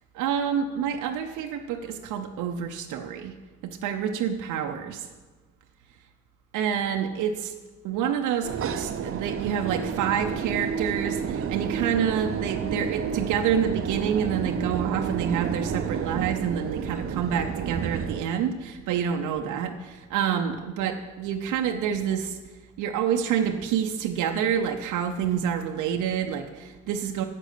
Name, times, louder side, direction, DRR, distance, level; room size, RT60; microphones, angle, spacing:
voice 1, 0.1-3.3 3.6-5.1 6.5-7.5 7.8-22.4 22.8-27.2, right 8 dB, 90° right, 3 dB, 0.6 m, -28 dB
sound 1, 8.4-18.2, right 7 dB, 45° right, 0.5 m, -30 dB
7.6 x 6.4 x 6.5 m, 1.3 s
cardioid pair, 90°, 30 cm